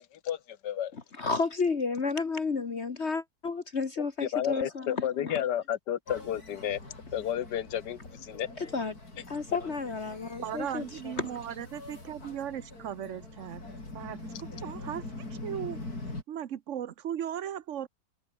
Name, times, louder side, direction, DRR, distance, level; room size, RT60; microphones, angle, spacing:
voice 1, 0.2-0.9 4.2-6.8 7.1-8.5, left 10 dB, 80° left, 1.6 m, -32 dB
voice 2, 0.9-5.4 8.6-8.9 9.3-11.3, left 4 dB, 40° left, 1.6 m, -32 dB
sound 1, 6.1-16.2, left 2 dB, 60° left, 6.6 m, -43 dB
voice 3, 10.4-13.6 13.9-15.0 15.4-15.8 16.1-17.9, right 10 dB, 55° right, 1.0 m, -37 dB
omnidirectional pair, 1.8 m